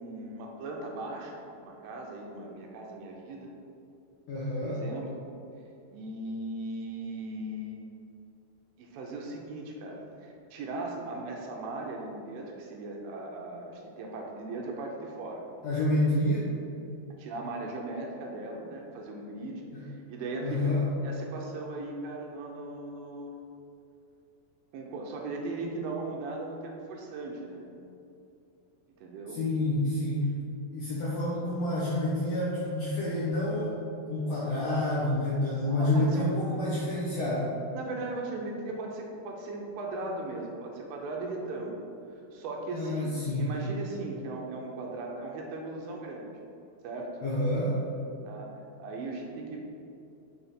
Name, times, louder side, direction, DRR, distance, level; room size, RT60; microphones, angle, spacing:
voice 1, 0.0-3.5 4.6-5.2 5.9-7.8 8.8-15.4 15.8-15.9 17.2-20.7 21.0-23.4 24.7-27.7 29.0-29.4 35.7-36.3 37.7-46.3 46.8-47.2 48.3-48.5 48.8-49.6, right 2 dB, 85° right, 0 dB, 2.4 m, -38 dB
voice 2, 4.3-4.8 15.6-16.5 19.7-19.8 20.4-20.8 29.3-30.3 30.7-33.7 34.1-37.5 42.7-43.5 47.2-47.7, left 1 dB, 90° left, -7 dB, 1.4 m, -28 dB
7.1 x 3.4 x 4.2 m, 2.7 s
omnidirectional pair, 4.2 m